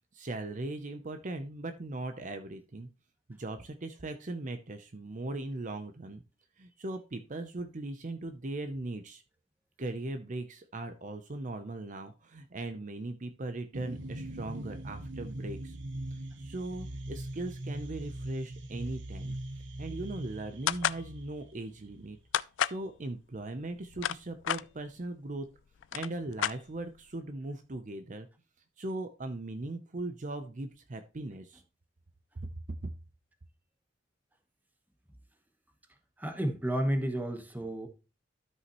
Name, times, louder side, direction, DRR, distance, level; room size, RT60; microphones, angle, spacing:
voice 1, 0.1-2.9 3.3-6.2 6.6-9.2 9.8-15.8 16.4-19.4 19.8-22.2 22.6-25.5 25.9-28.3 28.8-31.6 32.4-32.5 32.8-32.9, right 2 dB, 40° right, 0.6 m, -39 dB
Coming Down, 13.7-22.3, right 1 dB, 75° right, 0.9 m, -41 dB
sound 1, 20.7-21.0 22.3-22.8 23.7-24.6 25.5-25.6 25.8-27.0, left 11 dB, 85° left, 0.3 m, -31 dB
voice 2, 36.2-37.9, right 1 dB, 10° right, 1.1 m, -31 dB
12.5 x 5.6 x 3.0 m
head